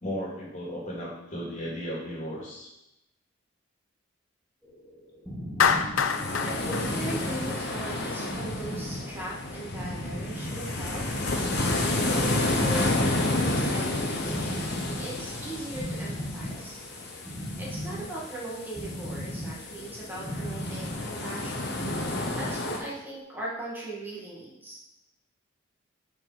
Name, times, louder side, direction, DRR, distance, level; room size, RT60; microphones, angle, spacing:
voice 1, 0.0-2.7, equal, 40° left, -4 dB, 2.6 m, -35 dB
sound 1, 4.6-23.2, equal, 10° left, 1.6 m, -38 dB
Clapping, 5.6-7.9, left 6 dB, 85° left, 0.5 m, -26 dB
voice 2, 5.7-11.1 11.9-16.8 17.6-21.8 22.4-24.8, right 1 dB, 10° right, -5 dB, 1.9 m, -39 dB
sound 2, 6.0-22.8, left 2 dB, 55° left, 1.1 m, -31 dB
7.4 x 4.9 x 5.1 m, 0.89 s
head